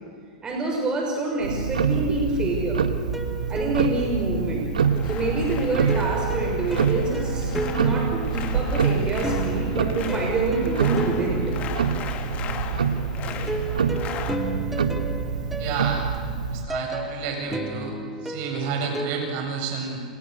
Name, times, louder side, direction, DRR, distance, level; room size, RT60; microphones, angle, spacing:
voice 1, 0.4-2.8 3.5-4.7 5.0-11.6 13.0-13.1, right 2 dB, 20° right, 0 dB, 6.3 m, -27 dB
sound 1, 1.3-2.3 3.1-5.0 5.9-12.6 13.5-19.4, right 2 dB, 5° right, 2.5 m, -34 dB
Tick-tock, 1.4-16.7, right 6 dB, 85° right, 1.7 m, -26 dB
sound 2, 4.8-14.4, left 7 dB, 35° left, 2.8 m, -38 dB
voice 2, 15.6-16.1 16.5-17.9 18.2-20.0, right 5 dB, 50° right, 2 dB, 7.9 m, -30 dB
28.5 x 26.5 x 6.7 m, 2.1 s
hypercardioid pair, 105°, 4 cm